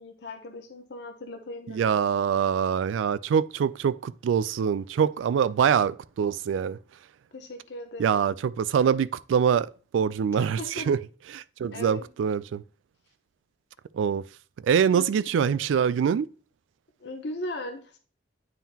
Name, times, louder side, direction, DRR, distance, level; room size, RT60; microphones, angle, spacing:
voice 1, 0.0-1.9 7.3-8.4 10.4-10.9 11.7-12.1 14.9-15.6 17.0-18.0, left 2 dB, 60° left, 0.7 m, -38 dB
voice 2, 1.7-6.8 8.0-11.0 11.3-12.6 13.9-14.2 14.6-16.3, right 7 dB, 90° right, 0.3 m, -24 dB
9.1 x 3.7 x 2.8 m
head